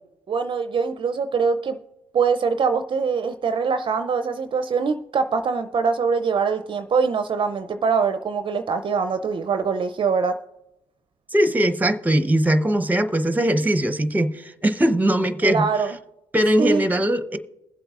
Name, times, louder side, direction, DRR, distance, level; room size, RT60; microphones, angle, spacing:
voice 1, 0.3-1.8 2.1-10.4 15.4-16.0 16.6-16.8, right 5 dB, 45° right, 0.5 m, -23 dB
voice 2, 11.3-15.7 16.3-17.4, right 1 dB, 15° right, 0.9 m, -20 dB
21.0 x 7.8 x 2.5 m
supercardioid pair, 60°, 12 cm